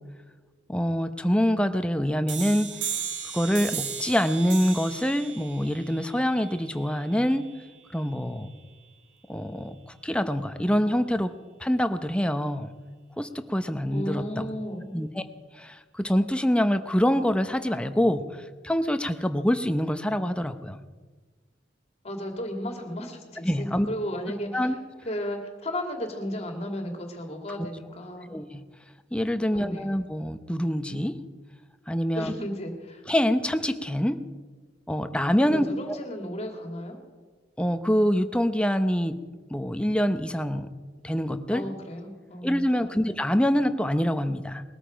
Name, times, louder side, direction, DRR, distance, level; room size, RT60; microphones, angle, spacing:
voice 1, 0.7-2.7 3.3-7.5 7.9-8.5 9.3-11.3 11.6-12.7 13.2-14.5 14.9-15.2 15.5-20.8 23.4-23.9 24.5-24.8 28.3-28.6 29.1-31.2 31.9-32.3 33.1-34.2 34.9-36.0 37.6-39.2 39.5-40.7 41.0-41.6 42.4-44.6, equal, 5° left, 9 dB, 0.8 m, -25 dB
sound 1, 2.3-7.7, right 7 dB, 85° right, 2.0 m, -36 dB
voice 2, 13.9-14.8 22.0-24.8 25.0-28.3 29.5-30.0 32.1-33.0 35.4-37.0 41.5-43.0, equal, 35° left, 3 dB, 2.4 m, -34 dB
21.0 x 13.5 x 5.1 m, 1.4 s
head